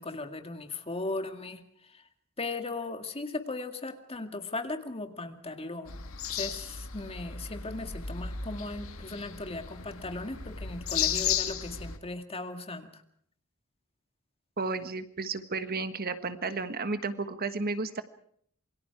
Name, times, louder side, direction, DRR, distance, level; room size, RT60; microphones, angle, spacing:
voice 1, 0.0-2.0 2.4-5.9 6.3-13.0, left 2 dB, 30° left, 6 dB, 2.1 m, -37 dB
sound 1, 5.9-12.0, left 8 dB, 75° left, 2.0 m, -34 dB
voice 2, 14.6-18.0, right 3 dB, 45° right, 10 dB, 1.4 m, -33 dB
27.5 x 23.5 x 4.8 m, 0.64 s
head